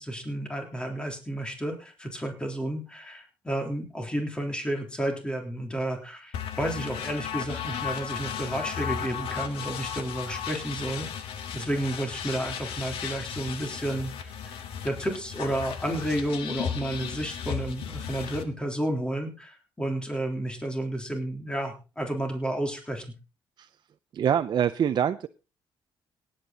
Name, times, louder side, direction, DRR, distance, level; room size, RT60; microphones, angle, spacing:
voice 1, 0.0-11.1 11.5-23.1, right 1 dB, 10° left, 3.6 m, -31 dB
sound 1, 6.3-18.4, left 8 dB, 85° left, 1.7 m, -35 dB
voice 2, 24.1-25.3, right 9 dB, 50° right, 0.6 m, -25 dB
18.0 x 8.8 x 4.0 m
cardioid pair, 110°, 9 cm